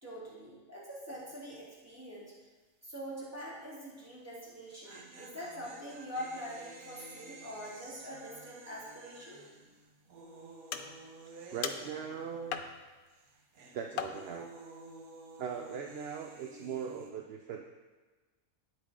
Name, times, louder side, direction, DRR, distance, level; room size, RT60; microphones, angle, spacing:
voice 1, 0.0-2.3 2.8-9.4, equal, 10° right, -9 dB, 3.2 m, -44 dB
sound 1, 1.1-1.5 1.7-1.8 4.5-12.8 13.1-17.1, right 2 dB, 80° right, 1.4 m, -52 dB
sound 2, 10.7-11.2 11.6-12.1 12.5-13.1 14.0-14.6, left 8 dB, 85° left, 1.1 m, -39 dB
voice 2, 11.5-12.6 13.7-14.5 15.4-17.7, right 7 dB, 60° right, 3 dB, 0.7 m, -40 dB
9.2 x 8.5 x 3.7 m, 1.3 s
omnidirectional pair, 1.5 m